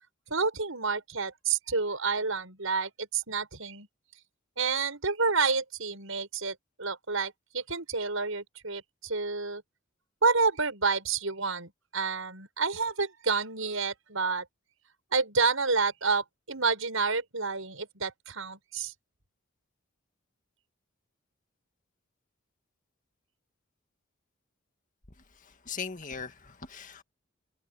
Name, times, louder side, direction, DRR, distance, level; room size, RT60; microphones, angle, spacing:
voice 1, 0.3-3.9 4.6-9.6 10.2-14.4 15.1-18.9, right 4 dB, 80° right, 6.4 m, -29 dB
voice 2, 25.7-27.0, left 6 dB, 40° left, 2.0 m, -39 dB
head